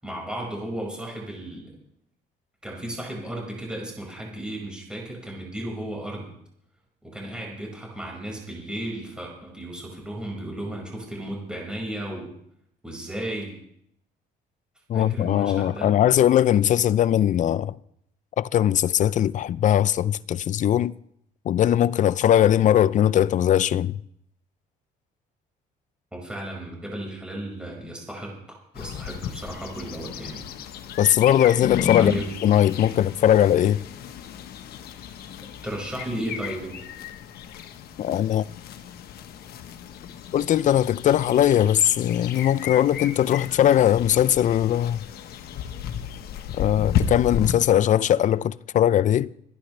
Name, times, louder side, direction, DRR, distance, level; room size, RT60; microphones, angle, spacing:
voice 1, 0.0-1.7 2.6-6.3 7.0-12.3 12.8-13.6 14.9-16.0 26.1-30.4 32.0-32.3 35.6-36.8, right 1 dB, 5° right, 5.3 m, -34 dB
voice 2, 14.9-17.8 18.4-20.9 21.5-24.0 31.0-32.1 32.4-33.8 38.0-38.5 40.3-45.0 46.6-49.3, left 11 dB, 45° left, 0.5 m, -20 dB
sound 1, 28.7-47.5, left 9 dB, 70° left, 1.2 m, -33 dB
26.5 x 10.5 x 3.3 m
cardioid pair, 110°, 17 cm